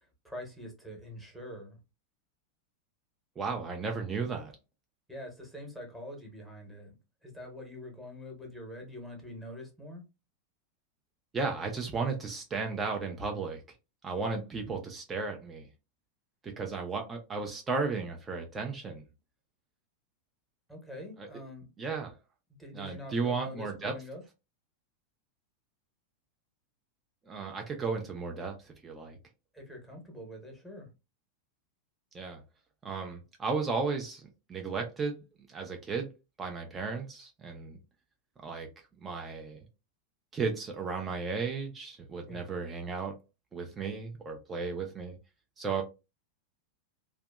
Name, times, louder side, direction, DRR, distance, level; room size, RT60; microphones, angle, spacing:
voice 1, 0.0-1.8 5.1-7.0 7.2-10.0 20.7-21.7 22.6-24.2 29.5-30.9 42.2-42.6, left 1 dB, ahead, 1.0 m, -45 dB
voice 2, 3.4-4.5 11.3-13.6 14.0-15.7 16.4-19.0 21.2-21.3 21.8-22.1 22.7-23.9 27.3-29.2 32.1-32.4 32.8-36.1 36.4-37.8 38.4-38.7 39.0-39.6 40.3-43.1 43.5-45.2 45.6-45.8, right 4 dB, 20° right, 0.4 m, -34 dB
2.6 x 2.1 x 2.3 m
figure-of-eight pair, 90°, 0 cm